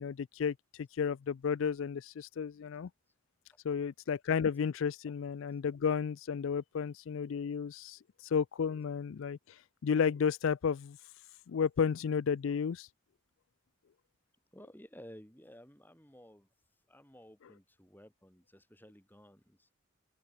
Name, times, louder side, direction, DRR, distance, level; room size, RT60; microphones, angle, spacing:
voice 1, 0.0-2.9 3.6-11.0 11.5-12.9, left 6 dB, 65° left, 0.4 m, -33 dB
voice 2, 14.5-16.5 16.9-19.7, equal, 10° left, 4.0 m, -55 dB
head